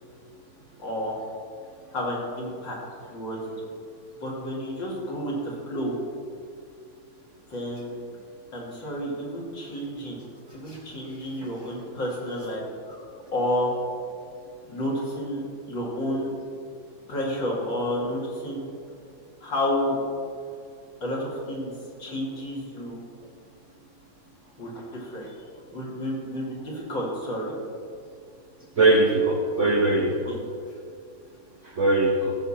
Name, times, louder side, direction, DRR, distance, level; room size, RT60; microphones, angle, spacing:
voice 1, 0.8-1.1 1.9-2.8 3.0-3.4 4.2-6.0 7.5-7.9 8.5-10.2 10.5-12.6 12.9-13.0 13.3-13.7 14.7-16.3 17.1-18.6 19.4-20.0 21.0-21.7 22.0-23.0 24.6-25.3 25.7-27.6 30.2-30.4, left 1 dB, 60° left, -5 dB, 3.3 m, -30 dB
voice 2, 28.8-30.3 31.7-32.4, right 2 dB, 55° right, 1 dB, 0.8 m, -21 dB
15.5 x 7.2 x 4.4 m, 2.3 s
omnidirectional pair, 2.4 m